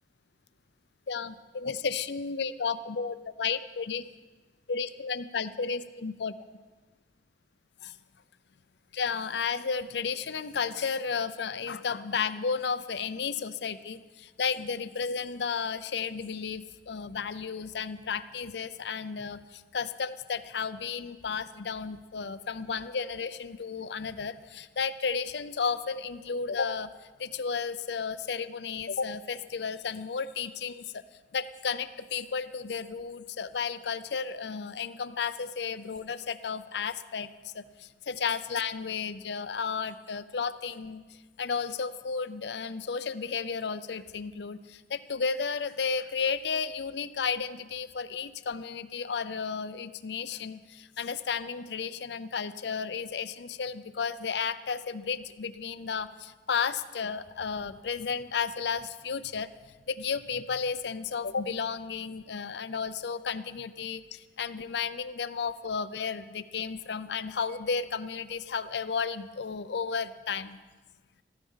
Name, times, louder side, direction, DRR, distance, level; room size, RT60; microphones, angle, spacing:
voice 1, 1.1-4.0 4.7-6.3 7.8-7.9 8.9-26.9 27.2-31.0 31.3-41.0 41.4-59.5 59.9-70.6, left 5 dB, 75° left, 13 dB, 0.6 m, -33 dB
14.0 x 13.5 x 5.6 m, 1.3 s
head